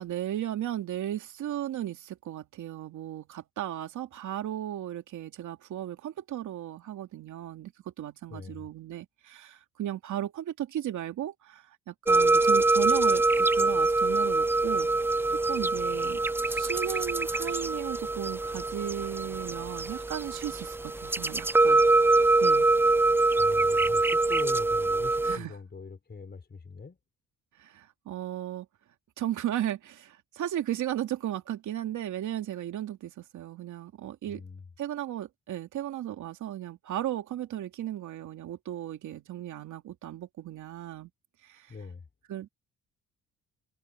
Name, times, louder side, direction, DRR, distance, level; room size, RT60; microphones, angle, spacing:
voice 1, 0.0-14.9 15.3-16.2 16.5-21.9 22.4-22.7 25.2-25.6 27.6-28.7 29.2-34.4 34.8-41.1 41.4-41.8 42.3-42.5, right 12 dB, 75° right, 2.8 m, -35 dB
voice 2, 8.3-8.7 23.4-27.0 34.2-34.6 41.7-42.0, left 4 dB, 35° left, 4.7 m, -42 dB
sound 1, 12.1-25.4, right 3 dB, 10° right, 0.4 m, -24 dB
cardioid pair, 90°, 30 cm